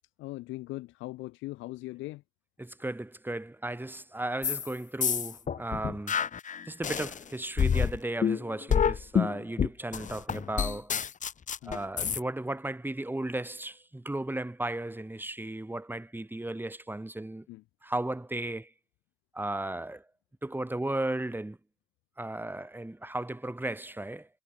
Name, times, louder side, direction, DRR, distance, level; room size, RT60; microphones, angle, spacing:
voice 1, 0.2-2.2 11.6-11.8 17.5-17.6, left 19 dB, 70° left, 1.3 m, -40 dB
voice 2, 2.6-6.2 6.7-10.9 11.6-17.5 17.8-18.7 19.3-20.1 20.4-21.6 22.2-24.3, right 1 dB, 10° right, 4.0 m, -35 dB
sound 1, 4.4-4.7 5.0-7.2 7.6-12.2, left 7 dB, 35° left, 1.1 m, -28 dB
hypercardioid pair, 60°, 21 cm